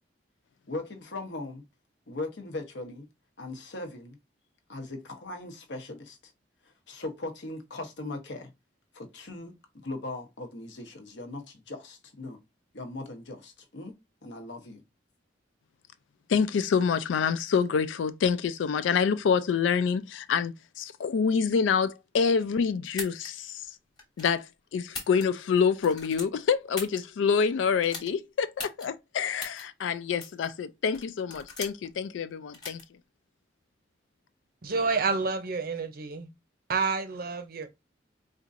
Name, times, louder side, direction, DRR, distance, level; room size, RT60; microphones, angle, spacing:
voice 1, 0.7-1.6 2.1-3.1 3.4-4.2 4.7-6.3 6.9-8.5 8.9-12.4 12.7-13.9 14.2-14.8, left 2 dB, 70° left, 0.9 m, -39 dB
voice 2, 16.3-23.7 24.2-24.5 24.7-32.8, left 6 dB, 85° left, 0.4 m, -27 dB
sound 1, 22.9-23.3 24.0-24.4 24.8-25.5 25.8-27.0 27.8-28.1 28.6-28.9 29.4-29.6 30.2-30.5 30.9-31.9 32.5-32.8, left 3 dB, 20° left, 1.1 m, -39 dB
voice 3, 34.6-36.3 36.7-37.7, right 4 dB, 50° right, 0.6 m, -29 dB
4.3 x 2.5 x 2.5 m
head